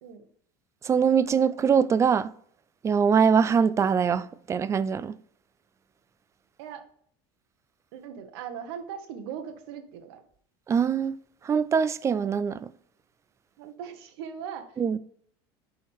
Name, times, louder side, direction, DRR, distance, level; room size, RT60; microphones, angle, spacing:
voice 1, 0.8-2.3 2.8-5.2 10.7-11.2 11.4-12.7 14.8-15.0, right 6 dB, 20° right, 0.3 m, -23 dB
voice 2, 7.9-10.2 13.6-15.0, right 8 dB, 80° right, 1.1 m, -39 dB
10.0 x 3.7 x 3.5 m
supercardioid pair, 120°, 13 cm